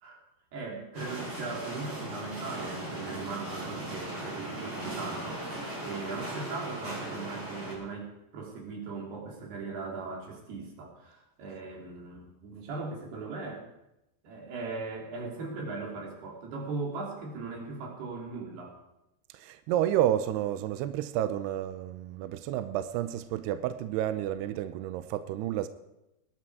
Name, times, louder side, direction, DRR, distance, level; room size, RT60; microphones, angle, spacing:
voice 1, 0.5-5.4 5.8-13.6 14.2-18.8, right 4 dB, 60° right, -1 dB, 5.1 m, -39 dB
sound 1, 0.9-7.8, right 1 dB, 20° right, 6.0 m, -38 dB
voice 2, 19.3-25.7, right 12 dB, 80° right, 11 dB, 2.4 m, -30 dB
19.5 x 12.0 x 4.8 m, 0.90 s
omnidirectional pair, 5.3 m